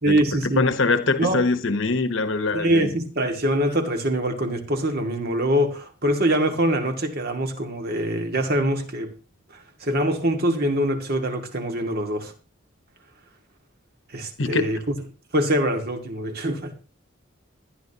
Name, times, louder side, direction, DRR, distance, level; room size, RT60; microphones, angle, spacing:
voice 1, 0.0-0.7 1.2-1.4 2.5-9.1 9.5-12.3 14.1-15.0 15.3-16.7, right 1 dB, 50° right, 2.2 m, -24 dB
voice 2, 0.6-2.9 14.4-14.7, left 3 dB, 70° left, 1.2 m, -23 dB
18.5 x 12.0 x 3.0 m
head